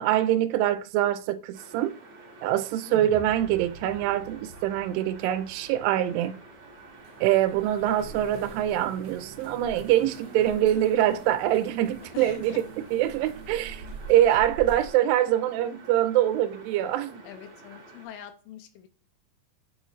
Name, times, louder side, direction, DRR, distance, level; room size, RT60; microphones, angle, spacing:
voice 1, 0.0-1.9 2.4-6.4 7.2-12.6 12.9-13.8 14.1-17.2, right 12 dB, 85° right, 2.2 m, -24 dB
sound 1, 1.5-18.1, right 2 dB, 55° right, 1.2 m, -49 dB
sound 2, 2.9-7.2, left 2 dB, 70° left, 1.7 m, -47 dB
sound 3, 6.7-14.9, right 6 dB, 70° right, 1.7 m, -44 dB
voice 2, 12.1-12.6 14.2-14.4 17.2-18.9, left 10 dB, 85° left, 2.4 m, -44 dB
8.6 x 3.0 x 3.9 m
omnidirectional pair, 3.9 m